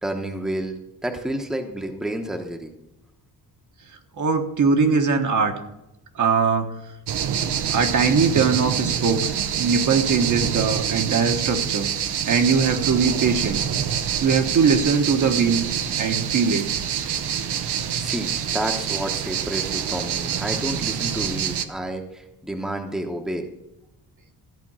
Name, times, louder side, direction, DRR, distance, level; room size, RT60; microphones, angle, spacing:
voice 1, 0.0-2.7 17.9-23.5, right 1 dB, ahead, 3 dB, 0.9 m, -30 dB
voice 2, 4.2-5.5 6.1-6.7 7.7-11.9 12.2-13.6 14.2-15.6 16.0-16.7, right 5 dB, 50° right, 5 dB, 1.3 m, -21 dB
sound 1, 7.1-21.7, right 8 dB, 85° right, 0.9 m, -26 dB
14.0 x 5.2 x 7.4 m, 0.87 s
wide cardioid pair, 160°, 39 cm